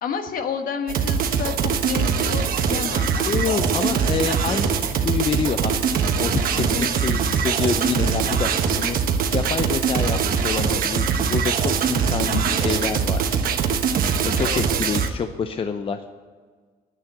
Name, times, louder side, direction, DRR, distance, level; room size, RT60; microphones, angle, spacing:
voice 1, 0.0-3.6 6.5-6.9 12.1-12.8 14.4-14.6, left 6 dB, 55° left, 7 dB, 1.4 m, -30 dB
sound 1, 0.9-15.1, right 6 dB, 60° right, 1.2 m, -22 dB
voice 2, 3.2-4.7 5.0-9.0 9.3-13.2 14.2-16.0, left 6 dB, 35° left, 8 dB, 0.6 m, -27 dB
9.9 x 8.9 x 9.2 m, 1.5 s
cardioid pair, 110°, 17 cm